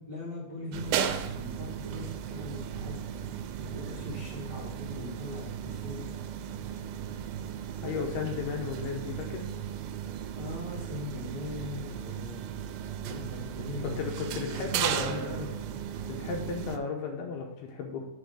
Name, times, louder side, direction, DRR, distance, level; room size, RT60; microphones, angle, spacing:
voice 1, 0.0-3.3 3.6-6.1 10.3-12.7 13.0-14.0 14.4-15.5, left 2 dB, 70° right, -7 dB, 1.0 m, -41 dB
sound 1, 0.7-16.8, right 9 dB, 85° right, 3.0 m, -36 dB
voice 2, 7.8-9.5 13.8-15.5 16.1-18.1, left 5 dB, 75° left, 1 dB, 2.5 m, -34 dB
6.3 x 5.0 x 6.3 m, 0.86 s
omnidirectional pair, 5.2 m